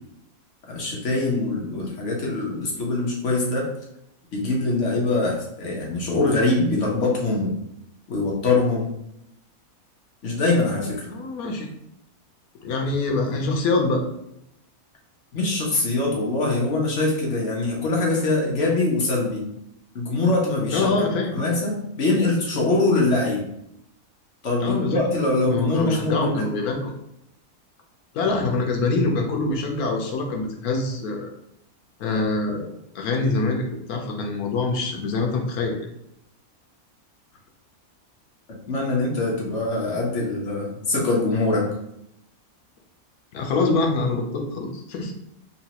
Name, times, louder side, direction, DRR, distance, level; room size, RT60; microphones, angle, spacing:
voice 1, 0.7-3.6 4.3-7.5 8.1-8.9 10.2-11.1 15.3-19.4 19.9-20.9 21.3-23.4 24.4-26.5 38.7-41.6, left 2 dB, 55° left, -2 dB, 1.1 m, -23 dB
voice 2, 11.1-11.7 12.6-14.0 20.7-21.4 24.6-25.0 25.5-26.9 28.1-31.3 32.0-32.7 32.9-35.8 43.3-45.1, left 3 dB, 80° left, 2 dB, 1.2 m, -25 dB
4.0 x 2.2 x 2.8 m, 0.78 s
omnidirectional pair, 1.5 m